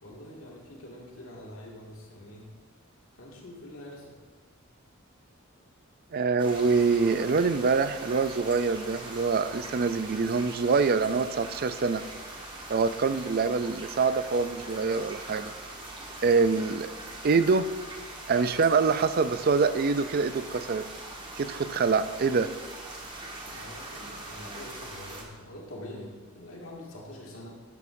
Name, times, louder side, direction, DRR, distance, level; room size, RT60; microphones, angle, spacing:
voice 1, 0.0-2.5 3.2-4.2 15.9-16.3 17.0-17.3 23.5-27.5, left 1 dB, 80° left, -3 dB, 2.3 m, -45 dB
voice 2, 6.1-12.0 12.7-15.5 16.2-16.9 17.2-17.7 18.3-20.9 21.4-22.5, right 4 dB, 45° right, 12 dB, 0.4 m, -25 dB
sound 1, 6.4-25.2, right 2 dB, 25° right, 1.4 m, -42 dB
12.5 x 11.0 x 2.7 m, 1.4 s
head